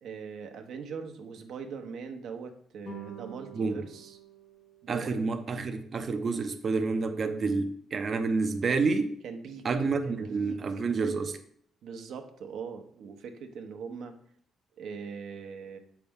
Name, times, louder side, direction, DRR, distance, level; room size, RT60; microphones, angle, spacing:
voice 1, 0.0-4.2 4.8-5.2 9.2-9.7 10.0-10.8 11.8-14.1 14.8-15.8, right 6 dB, 75° right, 1.0 m, -41 dB
sound 1, 2.8-5.4, right 4 dB, 80° left, 3.3 m, -47 dB
voice 2, 4.9-9.1 9.6-11.4, right 4 dB, 45° right, 0.7 m, -29 dB
7.6 x 5.8 x 3.6 m
cardioid pair, 90°, 0 cm